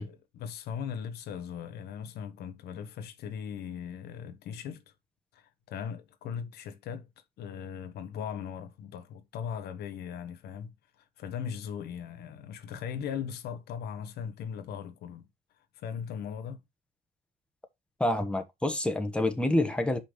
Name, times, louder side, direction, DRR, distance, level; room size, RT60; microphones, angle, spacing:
voice 1, 0.0-4.8 5.3-7.1 7.4-10.7 11.2-15.2 15.7-16.6, left 7 dB, 70° left, 1.2 m, -38 dB
voice 2, 18.0-20.0, left 1 dB, 5° left, 1.4 m, -27 dB
5.7 x 5.4 x 5.1 m
cardioid pair, 110°, 17 cm